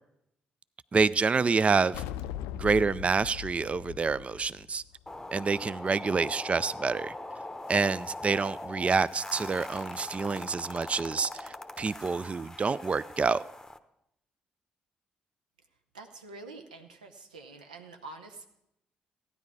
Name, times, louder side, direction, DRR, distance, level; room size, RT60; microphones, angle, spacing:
voice 1, 0.9-2.0 2.5-4.8 5.3-7.1 7.7-13.4, right 4 dB, 30° right, 18 dB, 0.3 m, -27 dB
sound 1, 1.9-5.4, left 11 dB, 75° left, 0.4 m, -39 dB
sound 2, 5.1-13.8, left 2 dB, 10° left, 0.9 m, -41 dB
voice 2, 15.9-18.5, right 3 dB, 90° right, 5 dB, 0.8 m, -46 dB
15.0 x 9.8 x 4.8 m, 0.84 s
hypercardioid pair, 40°, 4 cm